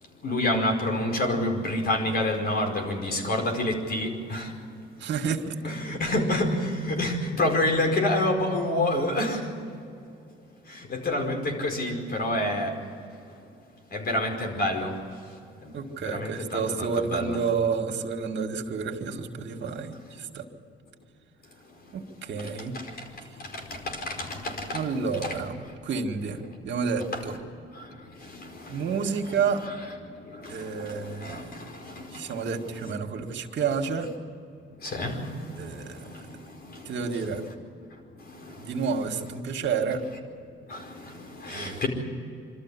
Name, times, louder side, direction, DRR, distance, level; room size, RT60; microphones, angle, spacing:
voice 1, 0.2-4.5 5.6-9.4 10.7-12.7 13.9-15.0 15.6-15.7 16.0-17.4 22.7-22.8 23.5-24.9 25.2-25.4 27.1-27.2 27.7-29.4 29.7-29.8 30.4-32.5 34.8-36.1 36.6-37.5 38.3-38.9 40.7-41.9, left 1 dB, 50° left, 3 dB, 5.1 m, -29 dB
voice 2, 5.0-5.6 15.7-20.4 21.9-22.8 24.7-27.4 28.7-29.6 30.5-31.7 32.1-34.1 35.6-36.1 36.9-37.4 38.6-40.0 41.5-41.8, right 5 dB, 65° right, 4 dB, 2.1 m, -30 dB
25.5 x 13.5 x 9.9 m, 2.5 s
cardioid pair, 90°, 20 cm